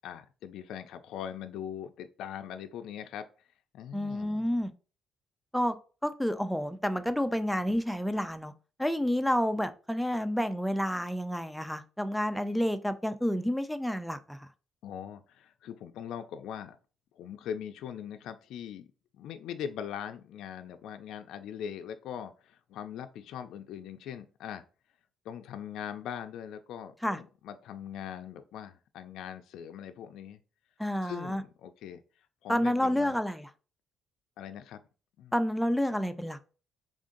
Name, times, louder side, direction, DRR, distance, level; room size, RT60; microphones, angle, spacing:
voice 1, 0.0-3.3 3.7-4.5 14.8-16.8 17.1-18.9 19.1-24.6 25.2-30.4 31.0-32.0 32.4-33.2 34.4-34.8 35.2-35.3, left 9 dB, 75° left, 0.3 m, -41 dB
voice 2, 3.9-4.7 5.5-5.8 6.0-8.5 8.8-14.4 27.0-27.2 30.8-31.4 32.5-33.5 35.3-36.4, equal, ahead, 0.3 m, -29 dB
3.6 x 2.6 x 3.7 m
cardioid pair, 140°, 0 cm